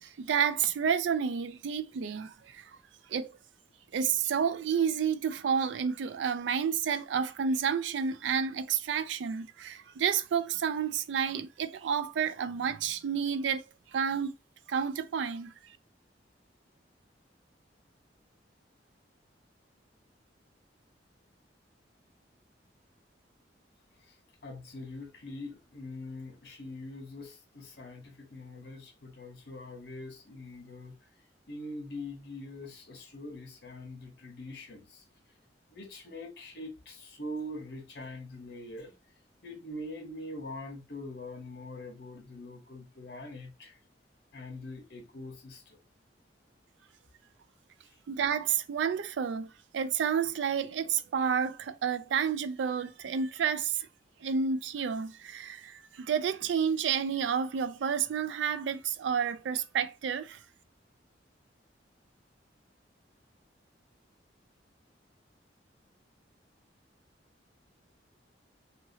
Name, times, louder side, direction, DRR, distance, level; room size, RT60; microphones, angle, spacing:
voice 1, 0.0-2.7 3.1-3.3 3.9-13.6 13.9-14.3 14.7-15.5 48.1-49.5 49.7-53.9 54.2-60.4, right 7 dB, 80° right, 0.3 m, -30 dB
voice 2, 24.0-31.0 31.5-35.0 35.7-38.9 39.4-43.8 44.3-45.8 47.8-48.0, left 1 dB, 60° left, 0.9 m, -43 dB
2.9 x 2.7 x 2.7 m
head